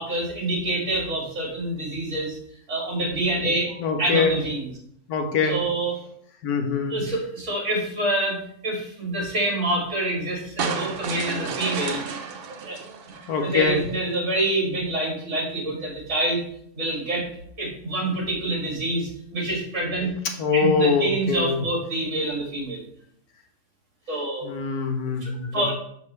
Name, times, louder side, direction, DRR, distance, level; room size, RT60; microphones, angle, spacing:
voice 1, 0.0-2.4 2.7-4.7 5.5-6.0 6.9-8.4 8.6-12.0 12.7-12.8 13.4-16.4 16.7-17.3 17.6-20.1 20.5-22.8 24.1-24.5 25.2-25.7, right 1 dB, 50° right, -2 dB, 2.1 m, -26 dB
voice 2, 3.8-4.4 5.1-5.6 6.4-7.0 13.3-13.9 20.4-21.6 24.4-25.7, left 4 dB, 85° left, 4 dB, 1.4 m, -23 dB
sound 1, 10.6-13.8, right 6 dB, 70° right, 0.5 m, -32 dB
5.9 x 5.3 x 3.2 m, 0.69 s
omnidirectional pair, 1.6 m